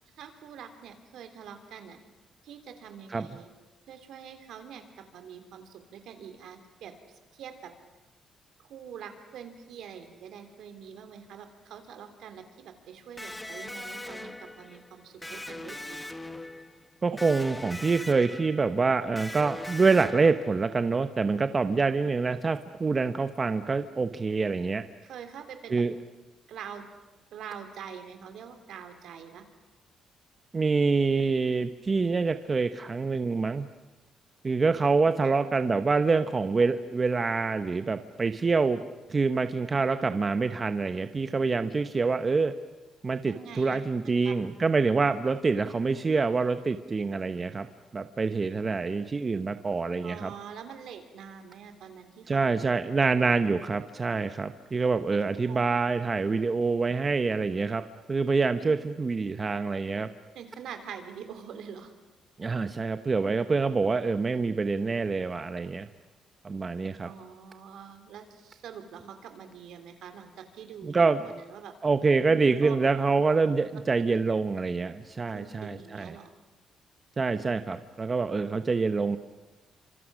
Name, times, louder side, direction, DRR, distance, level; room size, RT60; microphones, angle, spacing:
voice 1, 0.1-2.0 2.4-3.5 3.9-7.7 8.6-16.0 25.0-25.8 26.5-26.8 27.3-29.5 34.8-35.3 43.3-43.8 44.2-44.3 50.0-52.4 52.9-53.0 55.4-55.7 58.6-58.7 60.3-61.9 67.0-71.7 72.3-72.8 73.7-74.1 75.3-76.3, right 7 dB, 75° right, 7 dB, 3.2 m, -45 dB
Electric guitar, 13.2-20.9, left 1 dB, 10° left, 1.1 m, -41 dB
voice 2, 17.0-24.8 25.7-25.9 30.5-33.7 34.4-38.8 39.1-42.5 43.0-47.7 47.9-50.3 52.3-57.8 58.1-60.1 62.4-65.9 66.4-67.1 70.8-71.2 71.8-76.2 77.2-79.2, right 4 dB, 25° right, 10 dB, 0.8 m, -26 dB
29.5 x 26.0 x 6.3 m, 1.1 s
cardioid pair, 140°, 0 cm